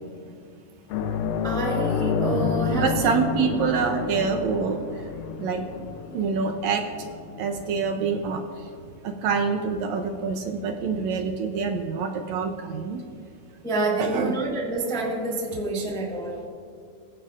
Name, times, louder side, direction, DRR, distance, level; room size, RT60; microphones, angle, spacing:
sound 1, 0.9-9.9 10.2-10.4 12.4-12.5, left 6 dB, 80° left, 2.2 m, -30 dB
voice 1, 1.4-3.1 7.3-7.4 13.6-16.4, right 2 dB, 5° left, -3 dB, 0.7 m, -28 dB
voice 2, 2.7-4.8 5.4-5.6 6.1-6.8 7.4-8.4 9.0-13.0 14.0-14.4, right 5 dB, 75° right, 4 dB, 1.8 m, -26 dB
21.5 x 11.0 x 2.5 m, 2.5 s
omnidirectional pair, 3.7 m